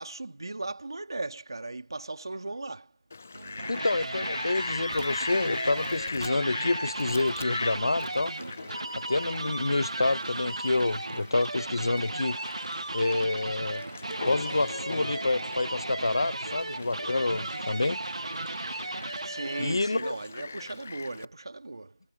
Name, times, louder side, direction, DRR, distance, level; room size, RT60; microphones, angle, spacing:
voice 1, 0.0-2.9 19.2-22.0, right 2 dB, 55° right, 2.0 m, -37 dB
Fowl, 3.1-21.3, left 4 dB, 20° left, 0.4 m, -40 dB
sound 1, 3.3-19.8, right 2 dB, 85° right, 0.9 m, -36 dB
voice 2, 3.7-8.3 8.9-12.4 12.9-13.8 14.2-18.0 19.6-20.1, left 2 dB, 55° left, 0.7 m, -28 dB
figure-of-eight pair, 180°, 3 cm